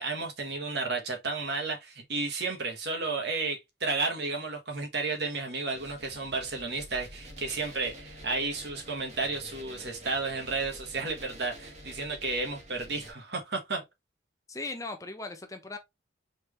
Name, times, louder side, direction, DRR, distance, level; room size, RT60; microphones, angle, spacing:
voice 1, 0.0-13.8, right 3 dB, 60° right, 1.4 m, -32 dB
sound 1, 5.7-13.1, right 1 dB, 35° right, 1.2 m, -48 dB
voice 2, 14.5-15.8, left 3 dB, 15° left, 0.6 m, -38 dB
4.4 x 3.2 x 3.1 m
head